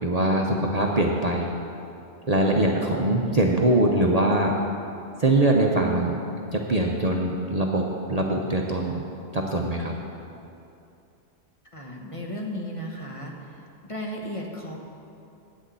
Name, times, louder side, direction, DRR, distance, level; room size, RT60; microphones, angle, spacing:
voice 1, 0.0-1.5 2.3-4.6 5.2-6.1 6.5-9.0 9.3-9.9, right 1 dB, 40° right, -1 dB, 0.7 m, -22 dB
voice 2, 11.7-13.6 13.9-14.8, equal, 30° left, -1 dB, 1.1 m, -35 dB
9.3 x 6.3 x 8.2 m, 2.7 s
omnidirectional pair, 1.2 m